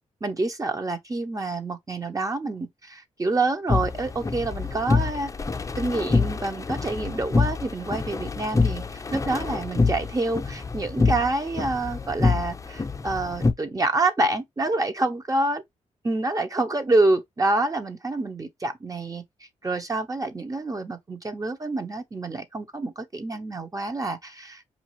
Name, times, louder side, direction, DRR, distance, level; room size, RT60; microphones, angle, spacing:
voice 1, 0.2-5.3 5.8-8.8 9.1-15.6 16.0-19.2 19.6-24.6, right 2 dB, 25° right, 0.8 m, -27 dB
sound 1, 3.7-13.5, left 4 dB, 25° left, 0.6 m, -26 dB
5.2 x 2.4 x 3.0 m
cardioid pair, 70°, 13 cm